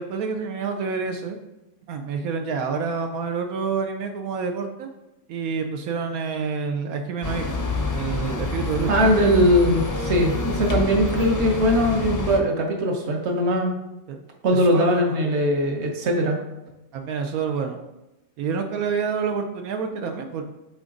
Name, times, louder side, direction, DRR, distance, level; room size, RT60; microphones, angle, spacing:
voice 1, 0.0-1.4 1.9-4.9 5.3-7.6 7.9-8.9 14.1-14.2 14.5-15.2 16.9-17.8 18.4-20.4, right 5 dB, 85° right, 5 dB, 1.1 m, -28 dB
sound 1, 7.2-12.4, left 3 dB, 30° left, 0.3 m, -27 dB
voice 2, 8.9-13.8 14.4-16.4, equal, 55° right, 2 dB, 1.3 m, -20 dB
7.9 x 3.8 x 3.8 m, 0.95 s
omnidirectional pair, 1.5 m